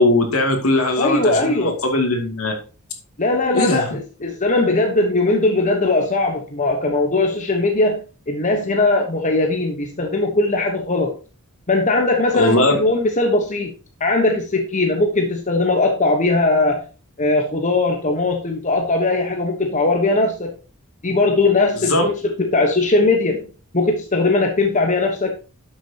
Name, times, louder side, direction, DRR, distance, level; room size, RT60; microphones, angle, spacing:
voice 1, 0.0-2.5 3.5-3.9 12.3-12.8 21.7-22.0, left 2 dB, 70° left, 4 dB, 2.6 m, -19 dB
voice 2, 1.0-1.8 3.2-3.9 4.2-8.0 8.3-11.1 11.7-13.7 14.0-16.8 17.2-20.6 21.0-23.5 23.7-25.3, left 2 dB, 35° left, 3 dB, 1.2 m, -19 dB
11.5 x 6.4 x 2.9 m, 0.34 s
head